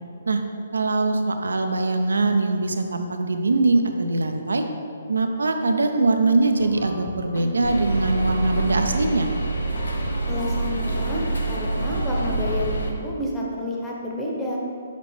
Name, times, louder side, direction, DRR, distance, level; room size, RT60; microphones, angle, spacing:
voice 1, 0.7-4.6 5.1-9.3, right 2 dB, 80° right, 5 dB, 0.6 m, -22 dB
Lo-fi Music Guitar (Short version), 6.6-12.7, left 2 dB, 50° left, 0.8 m, -35 dB
sound 1, 7.6-12.9, right 3 dB, 85° left, 0.8 m, -26 dB
voice 2, 10.3-11.2 11.5-14.6, left 1 dB, 5° left, -5 dB, 1.0 m, -29 dB
6.7 x 5.0 x 3.3 m, 2.5 s
hypercardioid pair, 140°, 0 cm